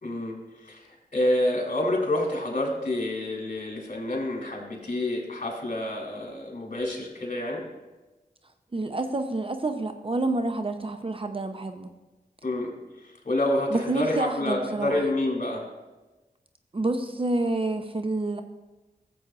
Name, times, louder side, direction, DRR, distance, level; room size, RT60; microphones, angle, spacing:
voice 1, 0.0-7.6 12.4-15.7, left 1 dB, 55° left, -1 dB, 2.9 m, -28 dB
voice 2, 8.7-11.9 13.7-15.0 16.7-18.4, right 2 dB, 35° right, 7 dB, 0.6 m, -28 dB
14.5 x 7.8 x 2.4 m, 1.1 s
cardioid pair, 50°, 16 cm